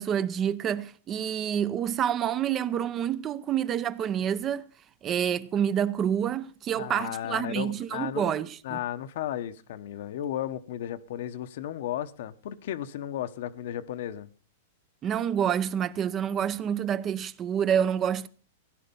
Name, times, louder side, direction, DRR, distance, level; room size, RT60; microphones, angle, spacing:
voice 1, 0.0-4.7 5.0-8.8 15.0-18.3, right 9 dB, 25° right, 0.7 m, -28 dB
voice 2, 6.8-8.4 8.6-14.3, left 11 dB, 65° left, 1.1 m, -34 dB
16.0 x 11.0 x 5.4 m
hypercardioid pair, 135°, 0 cm